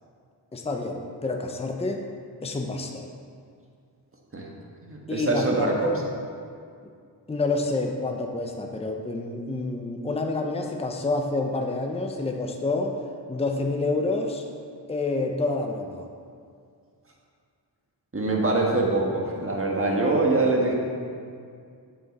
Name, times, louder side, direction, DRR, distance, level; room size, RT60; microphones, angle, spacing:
voice 1, 0.5-2.1 2.4-3.1 5.1-6.0 7.3-13.0 13.3-14.4 14.9-16.1, left 3 dB, 15° left, 3 dB, 0.6 m, -28 dB
voice 2, 4.8-5.9 18.1-20.7, right 2 dB, 30° right, -1 dB, 1.5 m, -24 dB
7.9 x 7.4 x 4.1 m, 2.2 s
wide cardioid pair, 90°, 43 cm